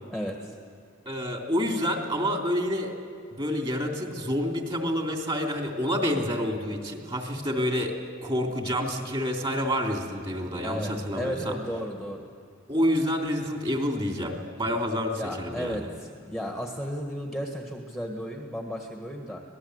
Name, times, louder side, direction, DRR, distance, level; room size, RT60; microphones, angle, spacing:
voice 1, 0.1-0.5 10.6-12.3 15.1-19.4, equal, ahead, 2 dB, 1.6 m, -34 dB
voice 2, 1.0-2.9 3.4-7.9 8.2-11.6 12.7-15.9, equal, 25° right, 2 dB, 3.2 m, -28 dB
26.0 x 19.0 x 8.1 m, 2.3 s
head